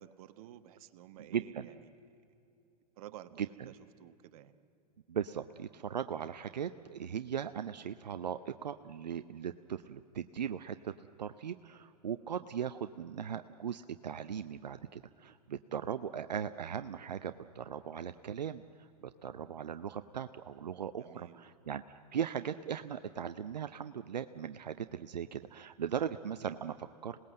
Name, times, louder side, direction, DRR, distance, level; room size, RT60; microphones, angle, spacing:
voice 1, 0.0-1.9 3.0-4.5 21.0-21.5, right 12 dB, 60° right, 11 dB, 1.2 m, -52 dB
voice 2, 1.3-1.7 5.1-21.8 22.1-27.2, right 8 dB, 85° right, 11 dB, 0.6 m, -39 dB
27.0 x 19.0 x 7.6 m, 2.8 s
hypercardioid pair, 105°, 21 cm